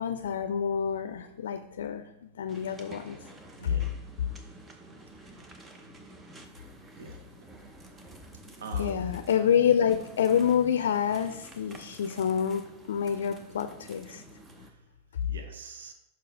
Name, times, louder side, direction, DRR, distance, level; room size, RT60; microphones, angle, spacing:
voice 1, 0.0-3.2 3.6-3.8 8.8-14.2 15.2-15.3, left 8 dB, 85° left, 9 dB, 0.4 m, -27 dB
sound 1, 2.5-14.7, right 1 dB, 15° right, 0.7 m, -50 dB
voice 2, 5.2-5.8 7.0-7.2 8.6-9.1 14.6-14.7 15.3-15.9, right 4 dB, 90° right, 5 dB, 0.8 m, -43 dB
5.6 x 4.7 x 4.7 m, 0.87 s
hypercardioid pair, 135°, 0 cm